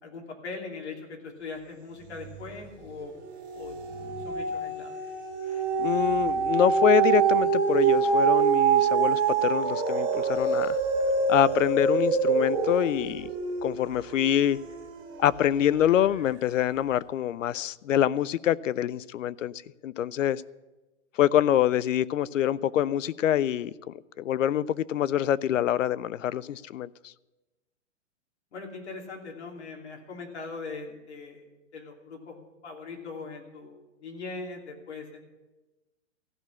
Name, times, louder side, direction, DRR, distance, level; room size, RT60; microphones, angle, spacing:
voice 1, 0.0-3.1 3.5-3.7 4.2-5.0 28.5-31.4 31.7-32.4 32.6-35.2, left 4 dB, 60° left, 2.9 m, -40 dB
sound 1, 2.1-2.7 3.0-15.5 16.0-16.1, right 5 dB, 20° right, 1.2 m, -26 dB
voice 2, 5.8-10.8 11.3-13.3 13.6-14.6 15.2-19.5 19.8-20.4 21.2-27.1, left 11 dB, 75° left, 0.6 m, -25 dB
15.0 x 6.3 x 9.7 m
hypercardioid pair, 180°, 38 cm